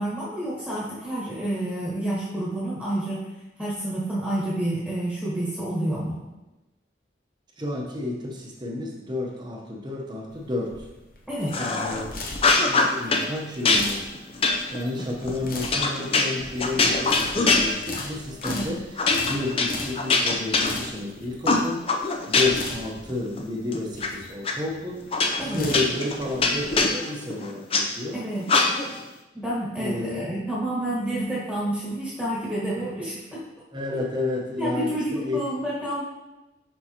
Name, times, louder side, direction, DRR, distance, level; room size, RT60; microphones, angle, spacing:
voice 1, 0.0-3.3 3.6-6.2 11.3-11.5 18.4-18.7 25.4-25.7 28.1-28.5 29.3-33.4 34.6-36.0, right 1 dB, 5° left, -8 dB, 1.4 m, -29 dB
voice 2, 7.6-10.9 11.5-12.3 12.6-14.1 14.7-28.2 29.8-30.3 33.7-35.5, left 2 dB, 25° right, -1 dB, 0.9 m, -31 dB
sound 1, 10.3-26.8, left 2 dB, 50° left, 0.9 m, -38 dB
sound 2, 11.5-12.0 12.3-13.3 13.6-18.1 18.4-18.6 19.0-21.1 21.4-22.7 23.1-24.1 24.4-24.5 25.1-27.8 28.5-29.0, left 3 dB, 30° left, 0.5 m, -23 dB
6.5 x 5.5 x 2.9 m, 1.0 s
head